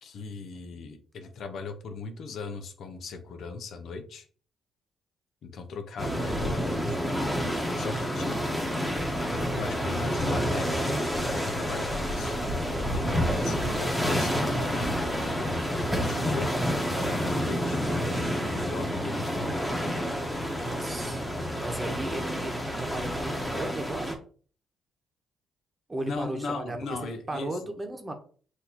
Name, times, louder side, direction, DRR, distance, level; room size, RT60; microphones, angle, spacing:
voice 1, 0.0-4.3 5.4-7.0 7.8-8.6 9.5-12.4 12.9-17.8 18.5-19.6 26.1-27.6, left 4 dB, 65° left, 7 dB, 0.7 m, -38 dB
sound 1, 6.0-24.1, equal, 5° left, 1.1 m, -29 dB
voice 2, 20.5-21.2 21.5-24.2 25.9-28.1, right 1 dB, 20° right, 5 dB, 1.0 m, -35 dB
6.3 x 2.7 x 2.9 m, 0.42 s
cardioid pair, 90°, 0 cm